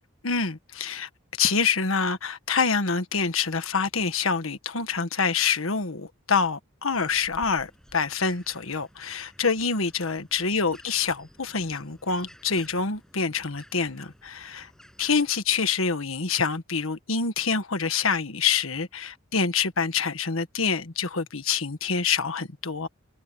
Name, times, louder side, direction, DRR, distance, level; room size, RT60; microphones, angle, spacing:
voice 1, 0.2-1.1 1.4-14.7 15.0-22.9, left 5 dB, 90° left, 1.6 m, -26 dB
sound 1, 6.9-15.3, equal, 5° left, 6.9 m, -53 dB
head